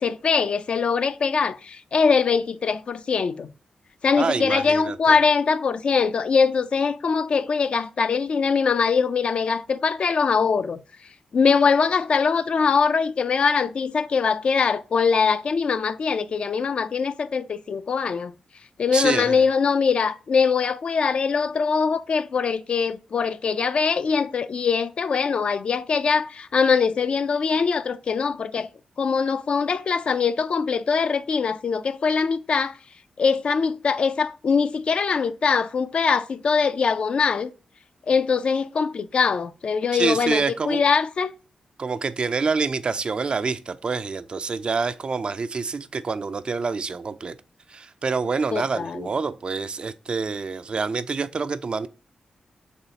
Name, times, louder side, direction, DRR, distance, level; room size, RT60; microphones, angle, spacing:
voice 1, 0.0-3.5 4.0-10.8 11.3-18.3 18.8-28.7 29.0-32.8 33.2-37.5 38.1-41.3 48.5-49.1, left 5 dB, 60° left, 0.3 m, -22 dB
voice 2, 4.2-5.2 18.9-19.4 39.9-40.8 41.8-47.4 47.7-51.9, right 4 dB, 50° right, 0.3 m, -27 dB
4.2 x 3.0 x 2.8 m
supercardioid pair, 45°, 2 cm